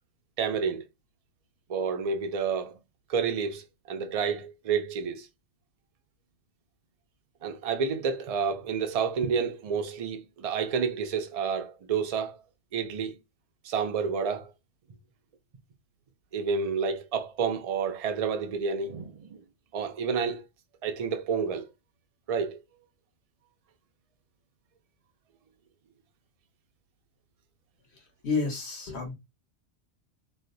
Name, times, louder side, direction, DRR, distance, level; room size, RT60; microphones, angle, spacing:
voice 1, 0.4-0.8 1.7-2.8 3.1-5.3 7.4-12.4 12.7-13.2 13.6-14.5 16.3-19.4 19.7-20.4 20.8-21.7 22.3-22.6, right 6 dB, 55° right, 0.4 m, -29 dB
voice 2, 27.9-29.1, left 4 dB, 65° left, 1.4 m, -31 dB
3.0 x 2.1 x 3.8 m
omnidirectional pair, 1.2 m